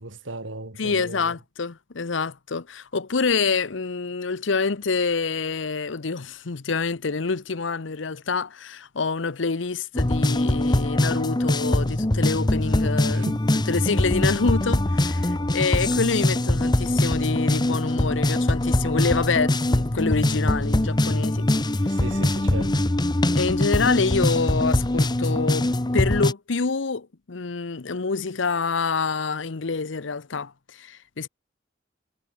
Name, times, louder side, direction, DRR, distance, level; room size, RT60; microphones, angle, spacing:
voice 1, 0.0-1.3 13.1-13.4 21.9-22.9, right 2 dB, 90° right, 3.0 m, -36 dB
voice 2, 0.8-13.3 13.7-21.5 21.8-21.9 23.4-25.7 25.9-31.3, left 4 dB, 75° left, 0.8 m, -27 dB
sound 1, 9.9-26.3, left 1 dB, 25° left, 0.9 m, -22 dB
head